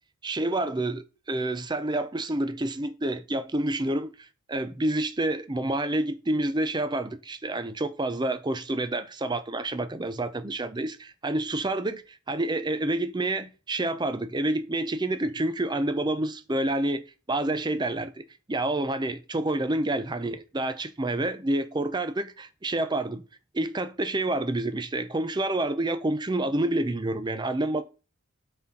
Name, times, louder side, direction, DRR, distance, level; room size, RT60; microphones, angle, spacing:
voice 1, 0.2-4.1 4.5-12.0 12.3-18.2 18.5-23.2 23.5-27.8, right 1 dB, 20° right, 0.5 m, -28 dB
7.6 x 4.4 x 3.8 m
head